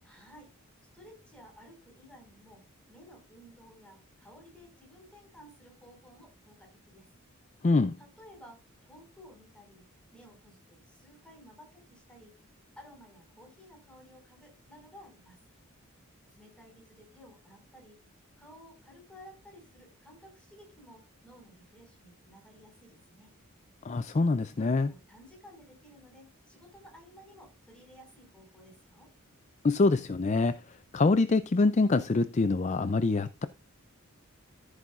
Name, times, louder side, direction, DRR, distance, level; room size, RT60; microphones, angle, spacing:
voice 1, 0.0-0.5 0.9-2.6 2.9-7.1 8.0-9.9 10.1-12.3 12.8-15.4 16.3-18.0 18.4-23.4 24.6-29.1, equal, 5° left, 5.4 m, -55 dB
voice 2, 7.6-8.0 23.8-24.9 29.6-33.5, left 3 dB, 30° left, 0.4 m, -25 dB
14.5 x 8.3 x 2.4 m
head